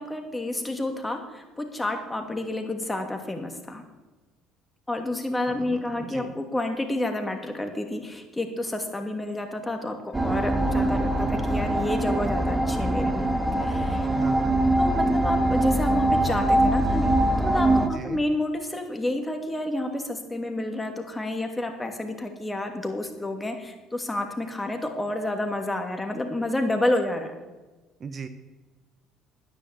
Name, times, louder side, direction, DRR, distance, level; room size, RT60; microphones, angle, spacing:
voice 1, 0.0-3.8 4.9-13.3 13.6-14.1 14.8-27.3, left 1 dB, 15° left, 5 dB, 2.7 m, -30 dB
voice 2, 5.5-6.3 14.1-14.6 17.9-18.2 28.0-28.3, right 5 dB, 40° right, 10 dB, 1.1 m, -38 dB
sound 1, 10.1-17.9, right 1 dB, 15° right, 1.6 m, -23 dB
10.5 x 10.0 x 8.1 m, 1.2 s
hypercardioid pair, 65°, 0 cm